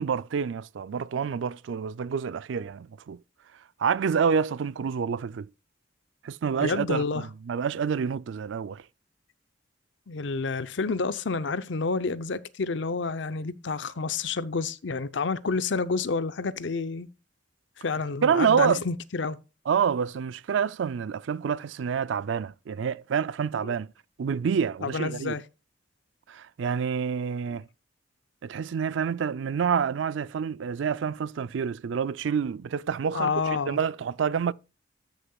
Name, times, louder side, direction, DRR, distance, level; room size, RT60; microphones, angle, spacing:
voice 1, 0.0-3.2 3.8-5.5 6.2-7.0 7.5-8.8 18.2-18.8 19.7-23.9 24.2-25.4 26.3-27.7 28.4-34.5, right 7 dB, 75° right, 0.4 m, -27 dB
voice 2, 6.6-7.3 10.1-17.1 17.8-19.4 23.6-23.7 24.8-25.4 27.5-27.6 33.1-33.8, left 4 dB, 70° left, 0.7 m, -29 dB
13.5 x 6.5 x 2.3 m
head